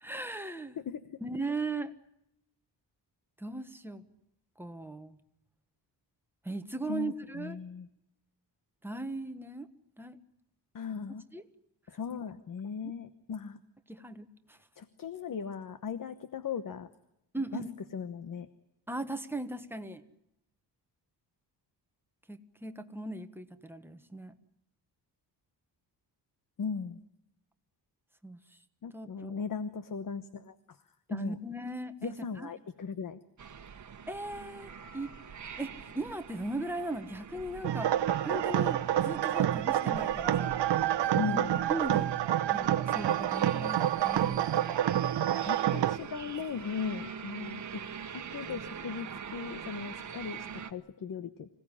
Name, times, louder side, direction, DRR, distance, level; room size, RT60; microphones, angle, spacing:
voice 1, 0.0-0.8 1.2-1.9 3.4-4.0 4.6-5.2 6.4-7.6 8.8-9.7 10.0-10.2 11.3-11.4 12.1-12.2 13.9-14.6 17.3-17.7 18.9-20.0 22.3-24.3 28.2-28.4 28.9-29.4 31.1-32.5 34.1-35.1 35.6-37.9 38.2-40.6 41.3-42.1 42.5-44.8, right 2 dB, 5° right, 8 dB, 1.3 m, -38 dB
voice 2, 0.8-1.2 6.9-7.9 10.7-11.2 11.9-13.6 14.8-16.9 17.5-17.6 17.9-18.5 26.6-27.0 28.8-30.8 31.1-31.4 32.0-33.2 41.2-41.5 45.5-47.8 48.1-51.5, left 6 dB, 50° left, 12 dB, 1.1 m, -38 dB
sound 1, 33.4-50.7, right 7 dB, 45° right, 1.4 m, -44 dB
sound 2, 37.6-46.0, right 11 dB, 75° right, 1.1 m, -28 dB
26.0 x 17.0 x 9.9 m, 0.81 s
wide cardioid pair, 160°, 42 cm